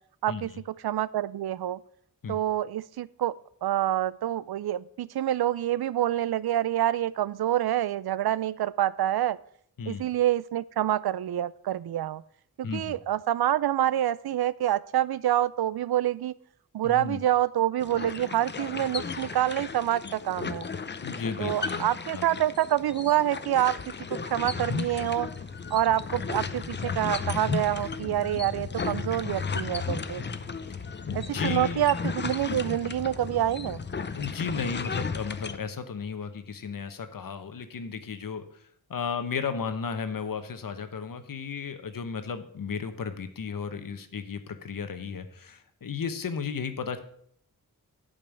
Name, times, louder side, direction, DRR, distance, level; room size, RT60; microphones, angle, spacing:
voice 1, 0.8-1.8 2.3-3.3 3.6-9.4 9.9-12.2 12.6-16.3 16.7-20.7 21.4-25.3 25.7-30.2 31.1-33.8, right 12 dB, 80° right, 19 dB, 0.5 m, -27 dB
voice 2, 12.6-13.0 16.8-17.2 21.0-22.3 31.1-31.9 34.2-38.4 38.9-47.0, left 6 dB, 60° left, 10 dB, 1.0 m, -34 dB
sound 1, 17.8-35.6, left 5 dB, 30° left, 0.5 m, -34 dB
8.8 x 5.4 x 7.5 m, 0.65 s
wide cardioid pair, 170°, 37 cm